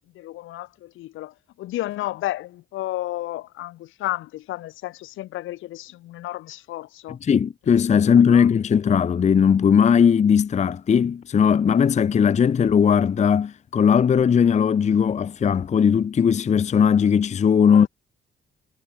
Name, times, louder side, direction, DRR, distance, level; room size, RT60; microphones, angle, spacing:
voice 1, 0.0-7.2 7.9-8.5 17.7-17.9, left 15 dB, 90° left, 4.6 m, -32 dB
voice 2, 7.2-17.9, left 7 dB, 35° left, 0.6 m, -18 dB
cardioid pair, 90°, 20 cm